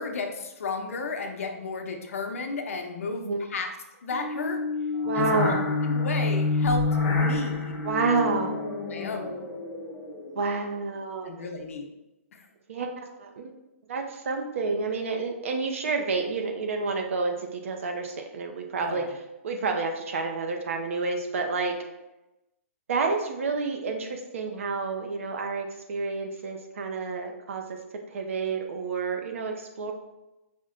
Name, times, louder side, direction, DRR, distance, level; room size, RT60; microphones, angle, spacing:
voice 1, 0.0-3.7 4.0-4.6 5.1-5.3 5.8-7.8 8.9-9.5 11.2-11.9 12.3-12.5 18.8-19.2, left 3 dB, 65° left, 3 dB, 0.7 m, -33 dB
sound 1, 4.1-10.5, left 3 dB, 20° left, 1.1 m, -28 dB
voice 2, 5.1-5.6 7.8-8.6 10.4-11.3 12.7-13.5 13.9-19.1 19.4-21.7 22.9-27.6 28.1-29.9, right 4 dB, 65° right, 3 dB, 0.5 m, -29 dB
5.1 x 2.1 x 3.7 m, 0.97 s
hypercardioid pair, 165°, 8 cm